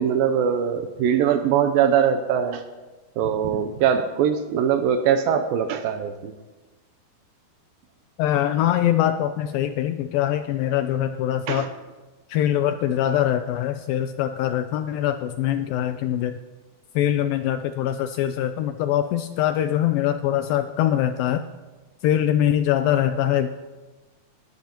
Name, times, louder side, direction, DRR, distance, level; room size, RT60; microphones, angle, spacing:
voice 1, 0.0-2.6 3.2-6.4 11.5-11.7, right 8 dB, 80° right, 8 dB, 2.2 m, -22 dB
voice 2, 8.2-11.7 12.3-16.4 17.0-21.4 22.0-23.5, left 11 dB, 85° left, 9 dB, 2.1 m, -23 dB
20.0 x 13.5 x 2.9 m, 1.2 s
omnidirectional pair, 4.5 m